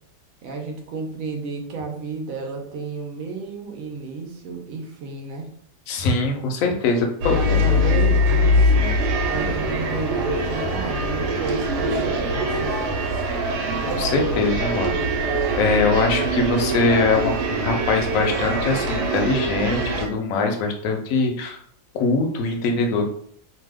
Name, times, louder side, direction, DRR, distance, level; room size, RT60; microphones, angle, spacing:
voice 1, 0.4-5.5 7.3-9.0 9.2-13.2, right 4 dB, 65° right, 2 dB, 0.9 m, -32 dB
voice 2, 5.9-7.6 13.8-21.6 21.9-23.1, left 3 dB, 70° left, 4 dB, 0.9 m, -23 dB
sound 1, 7.2-20.0, equal, 90° right, 1.2 m, -22 dB
2.7 x 2.2 x 3.4 m, 0.64 s
omnidirectional pair, 1.7 m